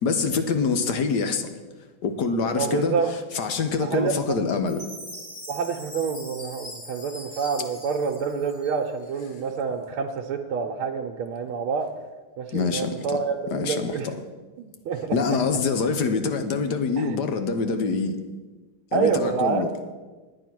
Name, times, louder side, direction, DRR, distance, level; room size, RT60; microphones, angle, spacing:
voice 1, 0.0-1.5 2.0-3.0 3.3-4.9 12.5-13.2 13.5-14.2 15.1-18.2 18.9-19.7, left 4 dB, 65° left, 1.2 m, -25 dB
voice 2, 2.5-3.1 3.8-4.4 5.5-11.9 12.4-14.1 14.6-15.2 17.0-17.2 18.9-19.7, right 6 dB, 80° right, 1.6 m, -27 dB
Chime, 4.7-9.0, left 1 dB, 40° left, 5.1 m, -42 dB
9.9 x 9.2 x 6.0 m
omnidirectional pair, 2.4 m